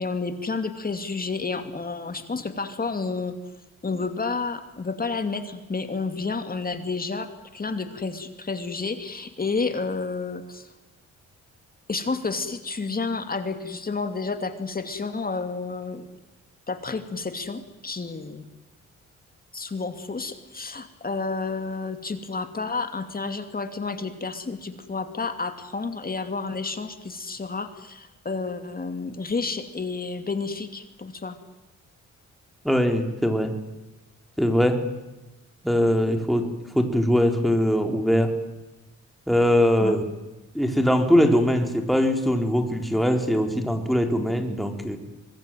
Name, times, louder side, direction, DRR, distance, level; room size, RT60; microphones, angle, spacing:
voice 1, 0.0-3.4 3.8-10.7 11.9-16.1 16.7-18.4 19.5-31.4 39.8-39.9, left 4 dB, 30° left, 8 dB, 2.6 m, -30 dB
voice 2, 32.6-33.5 34.4-34.8 35.6-36.5 36.7-38.3 39.3-40.0 40.5-45.0, equal, ahead, 4 dB, 4.2 m, -21 dB
25.0 x 21.5 x 9.3 m, 1.1 s
cardioid pair, 95°, 31 cm